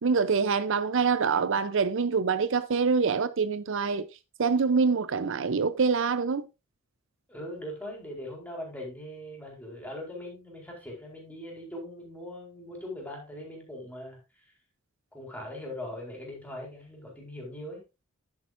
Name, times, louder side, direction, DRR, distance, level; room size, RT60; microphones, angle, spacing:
voice 1, 0.0-4.1 4.4-6.4, right 5 dB, 65° right, 0.6 m, -25 dB
voice 2, 7.3-14.2 15.1-17.8, left 1 dB, 5° left, 4.4 m, -40 dB
10.5 x 8.7 x 2.5 m
head